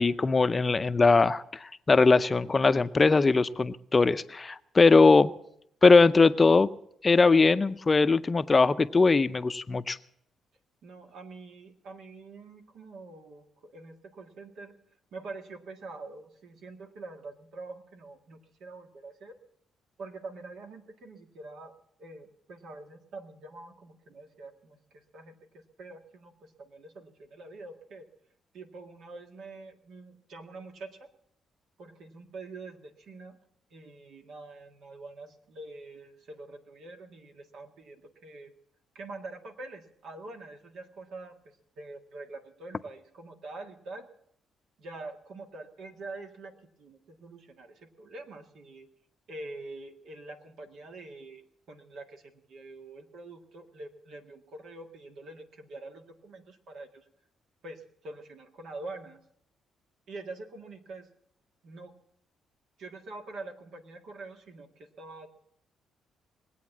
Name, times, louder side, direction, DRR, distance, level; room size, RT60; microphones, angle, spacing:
voice 1, 0.0-5.3 5.8-6.7 7.0-10.0, left 4 dB, 30° left, 12 dB, 0.5 m, -21 dB
voice 2, 10.8-14.8 15.1-19.3 20.0-21.7 22.0-28.0 28.5-31.1 31.8-33.4 33.7-38.5 39.0-44.1 44.8-48.9 49.3-57.0 57.6-59.2 60.1-61.1 61.6-61.9 62.8-65.3, right 3 dB, 70° right, 4 dB, 1.8 m, -45 dB
20.5 x 8.6 x 7.2 m, 0.74 s
cardioid pair, 90°, 0 cm